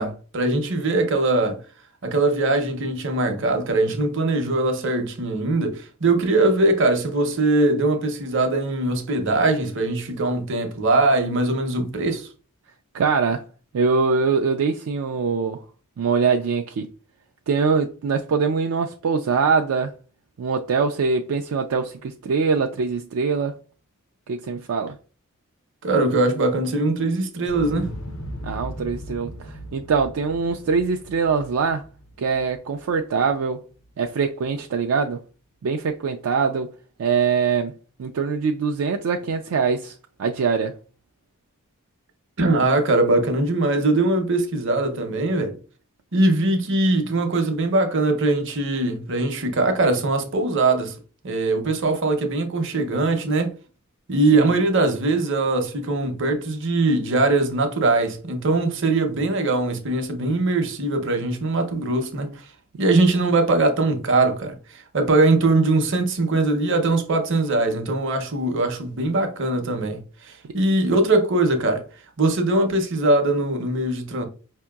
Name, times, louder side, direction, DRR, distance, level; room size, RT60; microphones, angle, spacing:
voice 1, 0.0-1.6 2.0-12.3 25.8-27.9 42.4-45.6 46.1-50.9 51.2-53.5 54.1-62.4 62.8-71.9 72.2-74.2, right 2 dB, 55° right, 0.7 m, -21 dB
voice 2, 12.9-13.4 13.7-15.6 16.0-16.9 17.5-19.9 20.4-23.6 24.3-25.0 28.4-31.9 32.2-33.6 34.0-35.2 35.6-36.7 37.0-37.7 38.0-40.7 54.3-54.5 70.4-70.5, right 5 dB, 75° right, 0.4 m, -23 dB
Explosion, 27.4-33.5 33.8-33.9, equal, 65° left, 0.6 m, -37 dB
5.1 x 2.8 x 2.3 m
head